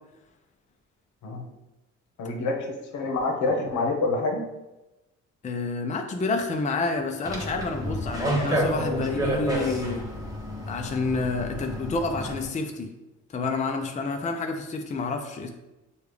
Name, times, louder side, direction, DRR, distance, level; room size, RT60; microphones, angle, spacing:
voice 1, 2.2-4.5, left 3 dB, 75° left, 1 dB, 0.9 m, -27 dB
voice 2, 5.4-10.0 10.7-12.9 13.3-15.5, left 3 dB, 25° left, 3 dB, 0.5 m, -29 dB
sound 1, 7.2-12.4, equal, 10° right, 1.0 m, -30 dB
6.4 x 2.4 x 3.3 m, 1.0 s
cardioid pair, 90°, 30 cm